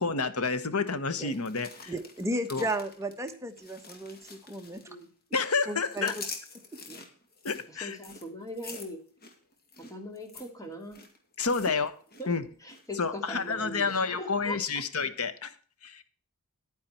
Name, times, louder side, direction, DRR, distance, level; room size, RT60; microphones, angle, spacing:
voice 1, 0.0-1.9 2.5-2.7 5.3-6.1 7.4-8.0 11.4-11.9 12.3-12.4 13.0-15.5 15.8-16.0, left 4 dB, 85° left, 12 dB, 1.2 m, -29 dB
sound 1, 1.2-5.1 5.3-12.3 12.5-12.9 13.3-14.0 14.4-14.5, left 4 dB, 45° left, 2.3 m, -46 dB
voice 2, 1.9-4.8 5.7-6.2, right 1 dB, 15° right, 5 dB, 1.2 m, -34 dB
voice 3, 7.7-9.0 9.8-11.0 12.2-12.3 12.6-14.8, equal, 15° left, 3 dB, 2.4 m, -41 dB
10.5 x 9.6 x 4.4 m, 0.42 s
head